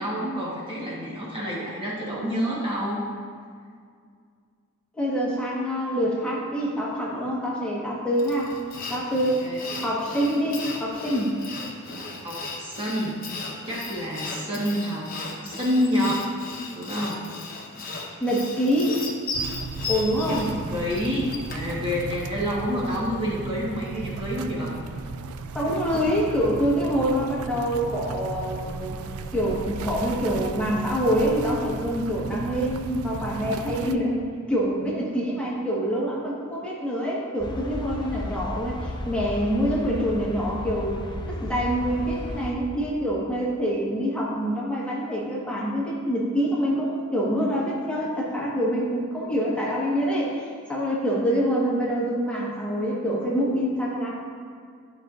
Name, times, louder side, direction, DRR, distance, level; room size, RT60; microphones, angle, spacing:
voice 1, 0.0-3.0 9.4-9.6 12.1-13.2 13.7-16.2 16.7-17.3 20.2-20.4 20.7-24.7, equal, 25° right, -5 dB, 1.3 m, -28 dB
voice 2, 5.0-8.5 8.9-9.5 9.8-11.3 18.2-19.0 19.9-20.6 25.5-29.0 29.3-54.1, equal, 5° left, -6 dB, 1.3 m, -26 dB
Sawing, 8.2-21.8, left 3 dB, 45° left, 1.0 m, -36 dB
sound 1, 19.3-34.0, right 4 dB, 85° right, 0.4 m, -35 dB
sound 2, 37.4-42.5, left 1 dB, 20° left, 0.4 m, -34 dB
12.0 x 5.4 x 2.5 m, 2.1 s
head